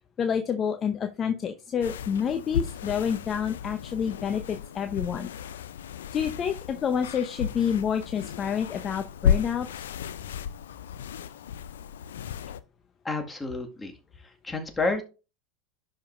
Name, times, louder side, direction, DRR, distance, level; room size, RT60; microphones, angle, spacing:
voice 1, 0.2-5.3 6.1-9.7, left 7 dB, 35° left, 8 dB, 0.9 m, -28 dB
sound 1, 1.8-12.6, left 8 dB, 75° left, 0.6 m, -33 dB
voice 2, 13.0-13.9 14.4-15.0, left 3 dB, 15° left, 3 dB, 2.0 m, -29 dB
11.5 x 5.2 x 2.6 m, 0.30 s
hypercardioid pair, 85°, 0 cm